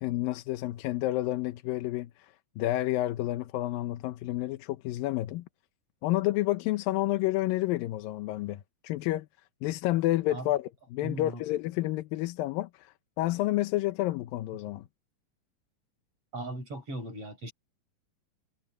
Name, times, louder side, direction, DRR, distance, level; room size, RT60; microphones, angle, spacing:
voice 1, 0.0-5.4 6.0-9.3 9.6-14.9, left 16 dB, 80° left, 2.5 m, -30 dB
voice 2, 11.0-11.4 16.3-17.5, right 1 dB, 40° right, 8.5 m, -38 dB
omnidirectional pair, 4.1 m